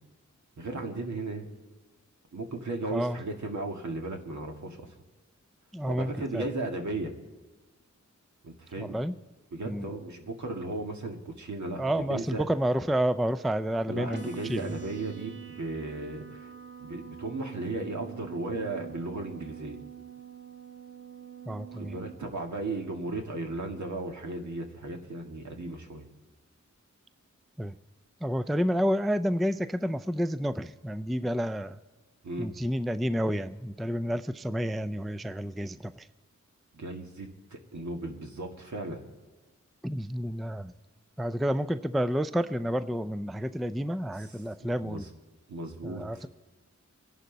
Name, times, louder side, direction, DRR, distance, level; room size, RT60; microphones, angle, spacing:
voice 1, 0.6-1.5 2.3-4.9 5.9-7.1 8.4-9.0 9.5-12.4 13.9-16.5 16.8-19.8 21.7-26.1 32.2-32.5 36.7-39.0 44.2-45.1 45.5-46.2, right 2 dB, 70° right, 2 dB, 2.0 m, -36 dB
voice 2, 5.7-6.4 8.8-9.1 9.7-9.9 11.8-14.7 21.5-22.0 27.6-27.7 28.2-31.8 32.4-35.9 39.8-40.7 41.2-45.0 45.8-46.3, equal, ahead, 13 dB, 0.4 m, -30 dB
sound 1, 14.1-22.1, right 8 dB, 40° right, 1.5 m, -44 dB
25.0 x 11.0 x 4.0 m, 1.3 s
wide cardioid pair, 115°, 30 cm